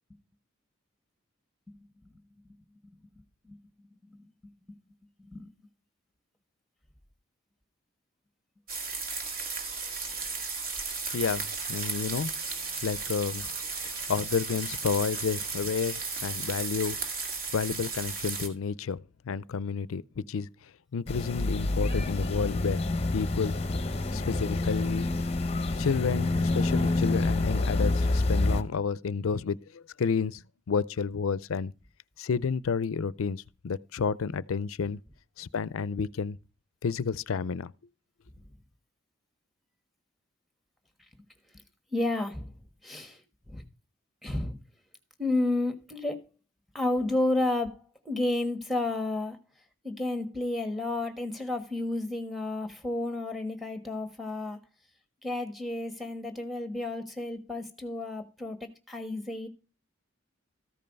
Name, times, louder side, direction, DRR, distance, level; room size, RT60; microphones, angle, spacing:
voice 1, 4.1-4.5 5.2-5.5 10.1-10.3 41.9-42.6 42.8-43.2 43.5-43.6 44.2-44.6 45.2-46.2 46.7-49.4 49.8-54.6 55.2-59.5, left 2 dB, ahead, 1.4 m, -31 dB
sound 1, 8.7-18.5, right 4 dB, 45° right, 2.0 m, -35 dB
voice 2, 11.1-12.3 12.8-13.5 14.1-17.0 17.5-20.5 20.9-22.8 23.1-23.6 24.1-25.1 25.8-30.4 30.7-31.7 32.2-35.0 35.4-36.4 36.8-37.7, left 5 dB, 90° left, 0.5 m, -30 dB
sound 2, 21.1-28.6, left 2 dB, 30° left, 0.7 m, -27 dB
14.0 x 5.5 x 5.3 m
head